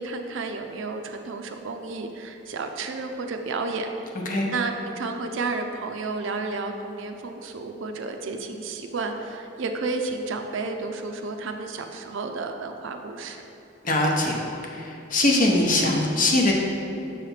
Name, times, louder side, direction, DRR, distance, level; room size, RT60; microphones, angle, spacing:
voice 1, 0.0-3.9 4.5-13.4, right 3 dB, 65° right, 4 dB, 0.5 m, -31 dB
voice 2, 13.8-16.5, left 2 dB, 40° left, -1 dB, 0.8 m, -22 dB
7.0 x 3.3 x 5.6 m, 2.8 s
head